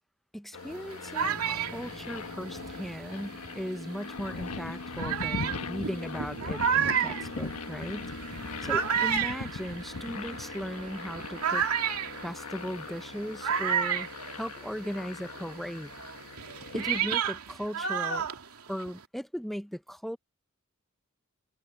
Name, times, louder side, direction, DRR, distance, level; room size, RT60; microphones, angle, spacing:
voice 1, 0.3-8.1 8.6-11.6 12.2-14.1 14.3-15.9 16.7-18.3 18.7-20.2, equal, ahead, 0.6 m, -37 dB
sound 1, 0.5-17.0, left 4 dB, 90° left, 1.3 m, -40 dB
sound 2, 0.7-3.7 4.4-4.5 5.0-15.0 15.3-19.0, right 7 dB, 85° right, 2.4 m, -32 dB
Bass guitar, 1.2-5.0, equal, 25° right, 3.3 m, -51 dB
head